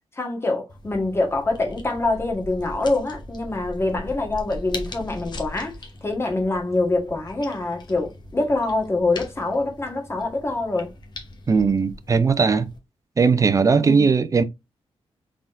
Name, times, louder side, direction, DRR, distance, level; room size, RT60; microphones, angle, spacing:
voice 1, 0.2-10.9 13.8-14.1, left 2 dB, 25° left, 1.4 m, -25 dB
sound 1, 0.7-12.8, left 1 dB, 45° left, 1.1 m, -40 dB
voice 2, 11.5-12.7 13.2-14.4, right 5 dB, 30° right, 0.5 m, -18 dB
4.1 x 3.7 x 2.5 m
wide cardioid pair, 115°, 11 cm